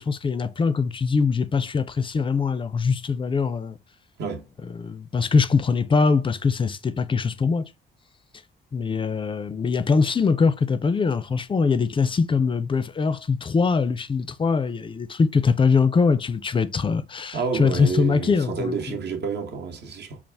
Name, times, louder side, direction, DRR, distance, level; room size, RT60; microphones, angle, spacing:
voice 1, 0.0-3.8 4.7-7.6 8.7-19.0, left 5 dB, 25° left, 0.4 m, -22 dB
voice 2, 17.3-20.2, right 5 dB, 60° right, 0.9 m, -29 dB
4.0 x 2.4 x 3.4 m
cardioid pair, 90°, 20 cm